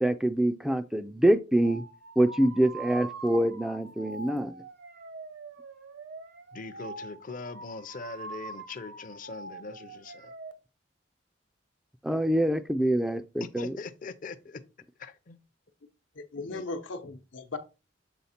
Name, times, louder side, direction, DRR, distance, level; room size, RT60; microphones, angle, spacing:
voice 1, 0.0-1.8 2.2-4.5 12.0-13.7, right 1 dB, ahead, 0.3 m, -25 dB
sound 1, 1.6-10.5, right 3 dB, 65° right, 0.8 m, -44 dB
voice 2, 6.5-10.3 13.6-14.6 15.0-15.4 16.5-16.7, left 4 dB, 45° left, 0.6 m, -42 dB
voice 3, 16.2-17.6, left 3 dB, 80° left, 0.9 m, -37 dB
7.1 x 3.6 x 4.2 m
head